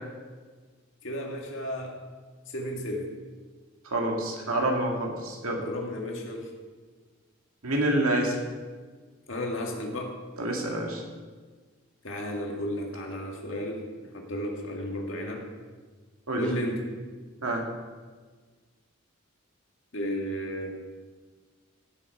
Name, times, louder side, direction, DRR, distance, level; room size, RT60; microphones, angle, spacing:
voice 1, 1.0-1.9 2.5-3.1 5.6-6.5 9.3-10.2 12.0-13.8 14.1-15.5 16.4-16.8 19.9-20.8, equal, 65° left, 0 dB, 2.1 m, -33 dB
voice 2, 3.9-5.6 7.6-8.4 10.4-11.0 16.3-16.4 17.4-17.6, right 1 dB, 85° right, 0 dB, 2.2 m, -27 dB
16.5 x 7.2 x 4.7 m, 1.4 s
head